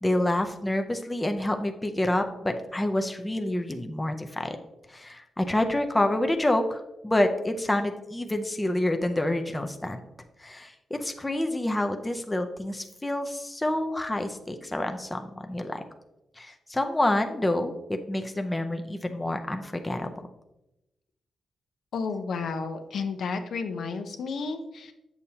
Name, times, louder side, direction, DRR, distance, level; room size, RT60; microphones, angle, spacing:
voice 1, 0.0-4.6 4.9-10.0 10.4-15.8 16.4-20.1, left 1 dB, 10° left, 5 dB, 0.5 m, -28 dB
voice 2, 21.9-24.9, left 4 dB, 75° left, 6 dB, 0.7 m, -32 dB
7.9 x 6.9 x 2.8 m, 0.93 s
wide cardioid pair, 125°, 0 cm